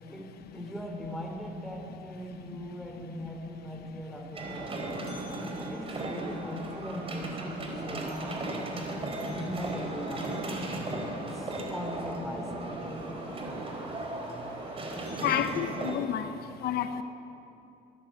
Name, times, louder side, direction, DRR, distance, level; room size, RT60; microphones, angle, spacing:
voice 1, 0.1-5.0 5.6-8.2 8.9-13.3, equal, ahead, 4.4 m, -40 dB
sound 1, 4.3-15.9, right 2 dB, 35° right, 4.5 m, -36 dB
voice 2, 15.2-16.3 16.6-17.0, left 10 dB, 70° left, 1.0 m, -29 dB
24.0 x 15.5 x 7.8 m
cardioid pair, 110°, 17 cm